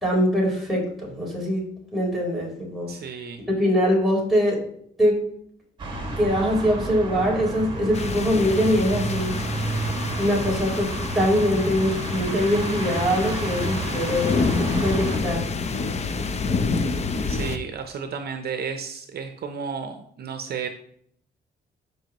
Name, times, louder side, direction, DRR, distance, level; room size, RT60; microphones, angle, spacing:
voice 1, 0.0-1.6 1.9-2.9 3.6-4.6 5.0-5.2 6.2-9.3 10.2-10.9 11.1-14.5 14.8-15.5, equal, ahead, -5 dB, 3.9 m, -23 dB
voice 2, 2.9-3.4 17.3-20.7, right 6 dB, 55° right, 7 dB, 0.7 m, -32 dB
sound 1, 5.8-15.2, right 1 dB, 25° right, 1.9 m, -30 dB
sound 2, 7.9-17.6, left 4 dB, 35° left, 0.7 m, -28 dB
13.0 x 5.4 x 3.0 m, 0.68 s
cardioid pair, 130°, 19 cm